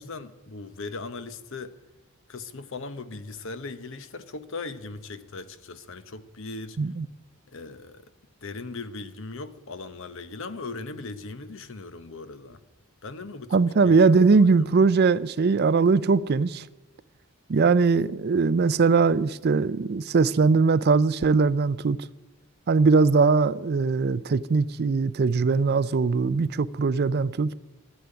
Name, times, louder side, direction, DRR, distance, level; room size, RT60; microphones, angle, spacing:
voice 1, 0.0-1.8 2.3-6.8 7.5-8.1 8.4-12.6 13.0-13.6 13.8-14.2 14.6-14.7, left 3 dB, 60° left, 0.9 m, -38 dB
voice 2, 13.5-16.7 17.5-22.0 22.7-27.5, right 4 dB, 50° right, 0.4 m, -21 dB
12.5 x 10.5 x 9.8 m
head